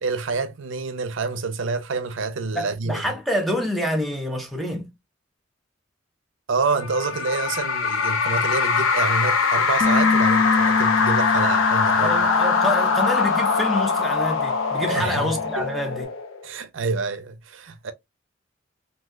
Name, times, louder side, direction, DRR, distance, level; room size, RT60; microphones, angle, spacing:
voice 1, 0.0-3.0 6.5-12.1 14.8-15.7 16.4-17.9, right 4 dB, 70° right, 0.6 m, -27 dB
voice 2, 2.5-4.9 12.0-16.1, equal, ahead, 0.7 m, -27 dB
sound 1, 6.8-16.5, left 4 dB, 80° left, 0.7 m, -22 dB
Bass guitar, 9.8-16.0, left 4 dB, 45° left, 0.4 m, -28 dB
3.9 x 2.7 x 2.2 m
head